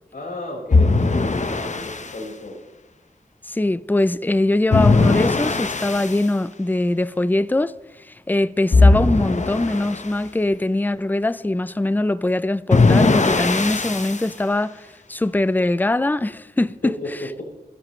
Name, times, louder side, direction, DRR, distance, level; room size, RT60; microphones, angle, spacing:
voice 1, 0.1-2.6 16.8-17.4, left 2 dB, 80° left, 5.2 m, -33 dB
sound 1, 0.7-2.1 4.7-6.2 8.7-10.1 12.7-14.3, left 3 dB, 55° left, 1.0 m, -18 dB
voice 2, 3.5-7.7 8.0-16.9, left 2 dB, 15° left, 0.5 m, -22 dB
28.5 x 10.5 x 3.2 m
wide cardioid pair, 85°, 14 cm